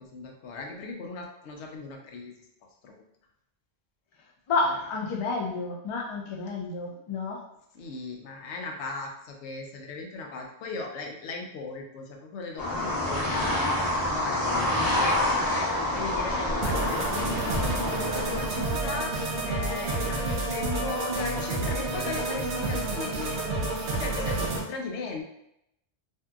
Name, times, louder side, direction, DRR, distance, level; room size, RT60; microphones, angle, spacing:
voice 1, 0.0-2.3 2.8-3.0 4.6-4.9 7.7-15.2 15.5-23.4 24.0-25.2, left 3 dB, 85° left, 2 dB, 0.9 m, -37 dB
voice 2, 4.5-7.4, left 3 dB, 50° left, -1 dB, 0.3 m, -30 dB
sound 1, 12.6-18.7, left 1 dB, 20° left, 0.7 m, -27 dB
sound 2, 16.6-24.6, right 2 dB, 80° right, 0.9 m, -29 dB
2.6 x 2.6 x 2.3 m, 0.78 s
omnidirectional pair, 1.1 m